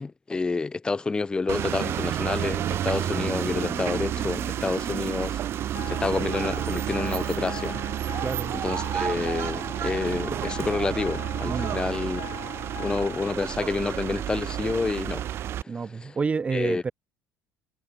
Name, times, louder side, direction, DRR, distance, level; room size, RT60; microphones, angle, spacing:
voice 1, 0.0-5.4 5.9-7.8 8.6-12.2 12.8-15.2 16.0-16.2 16.5-16.8, left 3 dB, 15° left, 0.4 m, -28 dB
sound 1, 1.5-15.6, right 11 dB, 55° right, 1.0 m, -30 dB
sound 2, 3.0-7.2, equal, ahead, 3.2 m, -41 dB
sound 3, 5.7-13.3, left 15 dB, 65° left, 1.4 m, -41 dB
voice 2, 8.2-8.6 11.5-11.8 15.7-16.9, right 5 dB, 25° right, 0.7 m, -29 dB
supercardioid pair, 100°, 5 cm